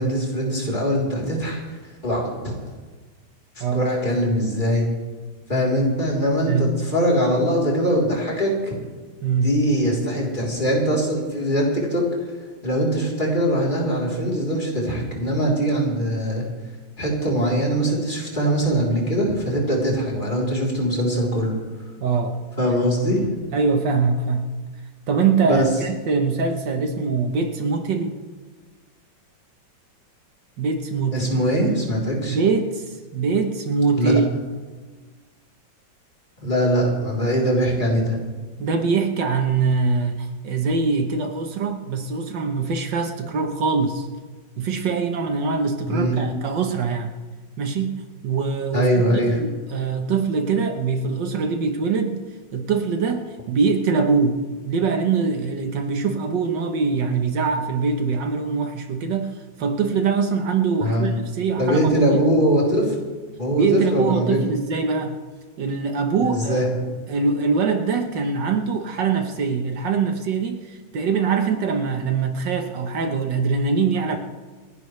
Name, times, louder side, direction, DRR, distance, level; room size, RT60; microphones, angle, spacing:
voice 1, 0.0-1.6 2.0-2.5 3.6-4.9 5.5-8.7 9.4-12.3 12.6-16.5 17.0-21.5 22.6-23.3 25.4-25.7 31.1-32.4 34.0-34.1 36.4-38.2 45.9-46.1 48.7-49.4 60.8-61.2 61.6-62.9 63.4-64.4 66.2-66.8, equal, 25° left, -3 dB, 3.7 m, -22 dB
voice 2, 9.2-9.5 22.0-22.4 22.7-22.8 23.5-24.4 25.1-28.2 30.6-31.2 32.3-34.3 38.6-44.1 44.6-47.1 47.6-48.9 49.3-52.2 52.5-62.1 63.6-65.2 65.6-66.6 67.1-74.2, right 5 dB, 70° right, 5 dB, 1.7 m, -23 dB
28.5 x 11.5 x 3.2 m, 1.4 s
omnidirectional pair, 2.0 m